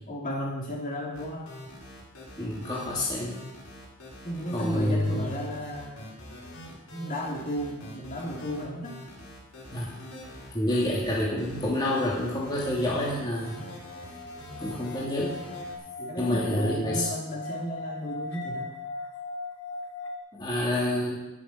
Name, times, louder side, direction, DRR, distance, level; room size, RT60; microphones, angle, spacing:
voice 1, 0.1-1.5 4.2-6.1 6.9-9.0 16.0-18.7, equal, 40° left, -2 dB, 3.0 m, -34 dB
sound 1, 1.1-15.8, left 1 dB, 80° left, 5.6 m, -44 dB
voice 2, 2.4-3.4 4.5-5.3 9.7-9.9 10.5-13.6 14.6-15.4 16.2-17.1 20.3-21.2, left 1 dB, 20° left, -6 dB, 2.6 m, -28 dB
sound 2, 11.8-20.2, left 3 dB, 60° left, 1.7 m, -40 dB
19.0 x 7.2 x 5.7 m, 0.98 s
head